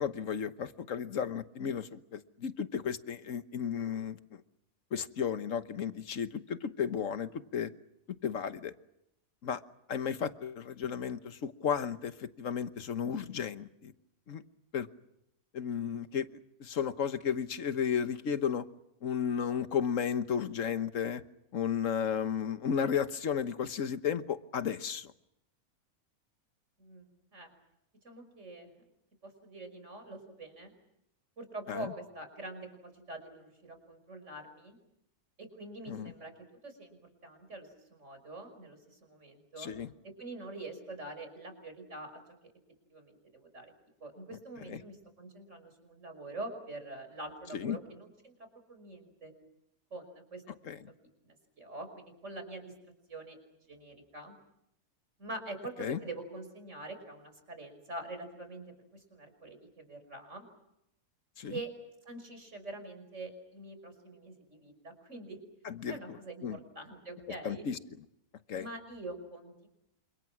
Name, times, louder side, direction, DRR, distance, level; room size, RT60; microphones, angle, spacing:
voice 1, 0.0-4.4 4.9-7.7 8.2-8.7 9.4-9.6 9.9-13.9 14.3-14.4 14.7-14.9 15.5-16.3 16.6-18.6 19.0-21.2 21.5-25.1 31.7-31.9 35.9-36.1 39.6-39.9 44.7-44.8 47.5-47.8 50.6-50.8 55.8-56.0 61.4-61.6 65.6-66.2 66.4-66.6 67.4-67.8 68.5-68.6, left 7 dB, 60° left, 11 dB, 1.5 m, -33 dB
voice 2, 28.0-28.7 29.2-30.7 31.4-34.8 35.4-37.0 37.2-39.7 40.0-42.5 42.9-43.7 44.0-48.3 48.7-49.3 49.9-50.4 51.2-52.7 53.1-53.4 53.7-54.3 55.2-60.5 61.5-61.7 62.1-65.4 65.9-67.6 68.5-69.7, right 2 dB, 50° right, 7 dB, 6.0 m, -45 dB
29.0 x 27.0 x 6.1 m, 0.82 s
omnidirectional pair, 1.6 m